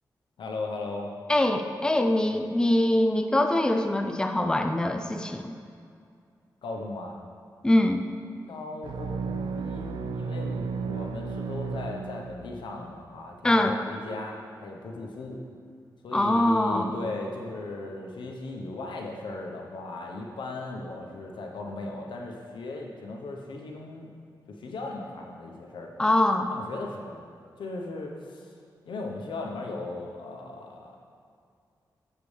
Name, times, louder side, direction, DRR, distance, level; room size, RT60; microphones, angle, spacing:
voice 1, 0.4-1.1 6.6-7.2 8.5-15.4 16.0-24.1 24.5-25.9 26.5-27.2 27.6-28.5 28.9-31.0, left 2 dB, 85° left, 1 dB, 0.9 m, -37 dB
voice 2, 1.3-5.5 7.6-8.0 13.4-13.8 16.1-17.0 26.0-26.5, left 1 dB, 10° left, 6 dB, 0.5 m, -23 dB
sound 1, 8.8-12.7, right 5 dB, 85° right, 0.4 m, -33 dB
7.5 x 6.9 x 3.3 m, 2.3 s
cardioid pair, 65°, 8 cm